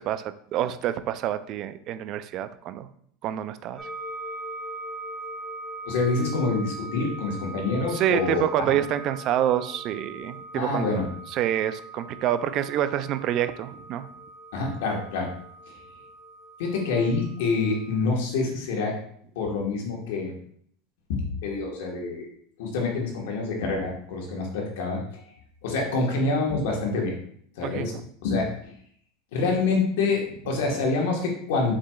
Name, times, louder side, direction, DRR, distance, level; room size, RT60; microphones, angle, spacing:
voice 1, 0.0-2.9 3.2-3.9 7.9-11.0 11.3-14.1 27.6-28.0 30.7-30.8, right 11 dB, 50° right, 12 dB, 0.3 m, -27 dB
sound 1, 3.8-18.1, right 2 dB, 5° right, 1.1 m, -41 dB
voice 2, 5.8-8.4 8.7-8.8 10.5-11.1 14.5-15.3 16.6-19.0 19.3-20.3 21.1-22.3 22.6-25.3 25.6-27.1 27.6-27.9 28.2-28.7 29.3-31.7, left 3 dB, 75° left, 0 dB, 1.3 m, -26 dB
4.8 x 4.3 x 2.3 m, 0.65 s
supercardioid pair, 105°, 0 cm